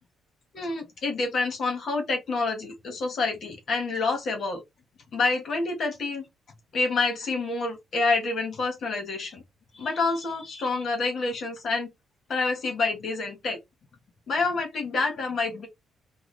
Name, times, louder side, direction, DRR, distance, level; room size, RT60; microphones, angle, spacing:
voice 1, 0.5-4.6 5.1-6.2 6.7-9.4 9.7-11.9 12.3-13.6 14.3-15.7, left 3 dB, 60° left, 1.4 m, -28 dB
3.6 x 2.3 x 3.3 m
cardioid pair, 90°, 0 cm